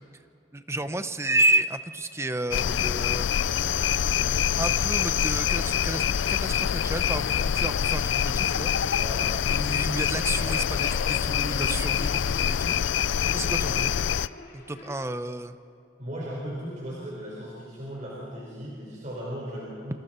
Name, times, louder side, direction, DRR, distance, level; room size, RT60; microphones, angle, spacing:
voice 1, 0.5-3.3 4.6-8.7 9.4-12.7 13.3-14.0 14.5-15.6, right 2 dB, 15° right, 11 dB, 0.7 m, -30 dB
sound 1, 2.5-14.3, left 8 dB, 75° left, 0.4 m, -25 dB
voice 2, 8.9-9.3 16.0-20.0, equal, 40° right, -5 dB, 4.6 m, -37 dB
sound 2, 10.1-14.9, left 2 dB, 50° left, 4.4 m, -42 dB
27.5 x 26.0 x 4.4 m, 2.7 s
head